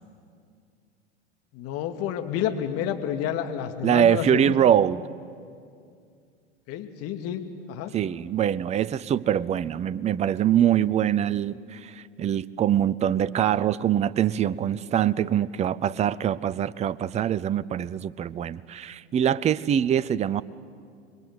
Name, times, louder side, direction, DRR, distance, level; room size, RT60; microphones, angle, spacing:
voice 1, 1.5-4.5 6.7-7.4 7.7-7.9, left 9 dB, 45° left, 7 dB, 2.3 m, -29 dB
voice 2, 3.8-5.0 7.9-20.4, right 10 dB, 20° right, 19 dB, 0.6 m, -24 dB
26.5 x 22.0 x 8.1 m, 2.3 s
figure-of-eight pair, 85°, 33 cm